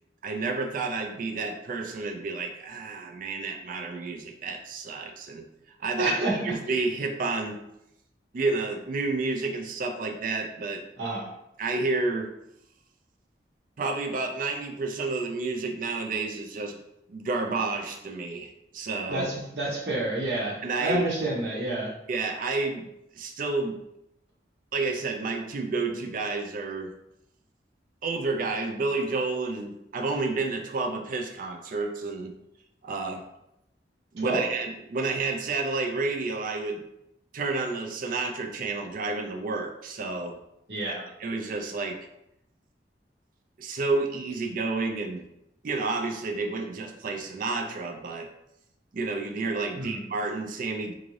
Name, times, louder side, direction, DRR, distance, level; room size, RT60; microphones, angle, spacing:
voice 1, 0.2-5.5 5.8-6.1 6.4-7.6 8.3-10.8 11.6-12.3 13.8-16.7 17.1-19.3 20.6-21.0 22.1-22.9 23.1-23.8 24.7-26.9 28.0-32.3 32.8-33.2 34.1-36.8 37.3-40.4 40.8-42.0 43.6-45.2 45.6-48.3 48.9-50.9, right 3 dB, 50° right, 3 dB, 0.4 m, -30 dB
voice 2, 6.0-6.5 11.0-11.3 19.1-21.9 34.2-34.4 40.7-41.0 49.7-50.0, right 2 dB, 70° right, -4 dB, 0.9 m, -29 dB
3.6 x 2.5 x 3.1 m, 0.82 s
head